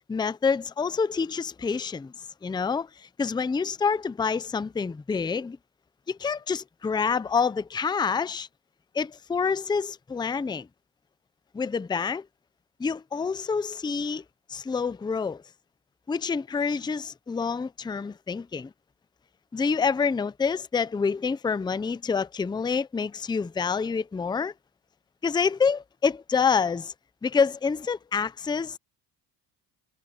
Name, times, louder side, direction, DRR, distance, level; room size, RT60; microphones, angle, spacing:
voice 1, 0.1-2.1 2.4-5.6 6.1-8.5 8.9-10.7 11.5-12.3 12.8-14.2 14.5-15.4 16.1-18.7 19.5-24.5 25.2-26.9 27.2-28.8, left 5 dB, 10° left, 0.5 m, -27 dB
cardioid pair, 115°, 43 cm